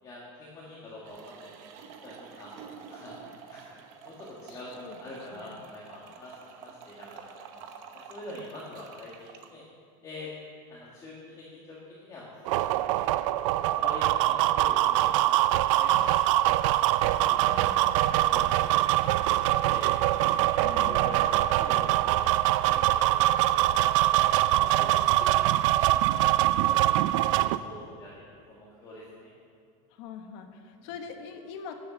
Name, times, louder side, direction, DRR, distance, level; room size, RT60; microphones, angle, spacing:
voice 1, 0.0-3.2 3.5-3.8 4.0-7.6 8.1-9.6 10.0-10.3 10.7-13.0 13.5-16.5 17.0-19.9 20.3-21.2 21.6-22.4 22.7-24.9 25.2-25.7 26.0-26.1 26.5-29.3 30.8-30.9, left 2 dB, 20° left, -6 dB, 2.0 m, -45 dB
sound 1, 1.0-9.5, right 7 dB, 50° right, 1.0 m, -48 dB
voice 2, 4.5-5.0 5.3-5.6 17.4-18.2 20.5-21.3 29.9-31.7, left 6 dB, 60° left, 6 dB, 1.3 m, -43 dB
sound 2, 12.4-27.6, right 15 dB, 75° right, 0.4 m, -23 dB
11.5 x 7.9 x 7.0 m, 2.2 s
cardioid pair, 170°, 16 cm